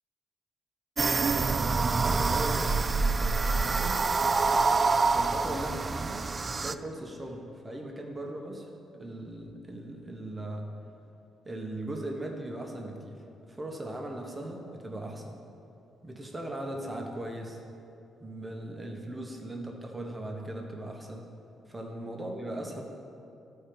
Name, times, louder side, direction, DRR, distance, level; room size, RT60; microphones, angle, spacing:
sound 1, 1.0-6.7, right 4 dB, 30° right, 0.3 m, -26 dB
voice 1, 2.0-4.0 5.1-8.7 8.9-10.7 11.4-15.4 16.0-17.6 18.2-21.3 21.7-22.8, right 1 dB, 15° right, 1 dB, 1.2 m, -38 dB
12.5 x 4.5 x 5.2 m, 2.7 s
cardioid pair, 90°, 0 cm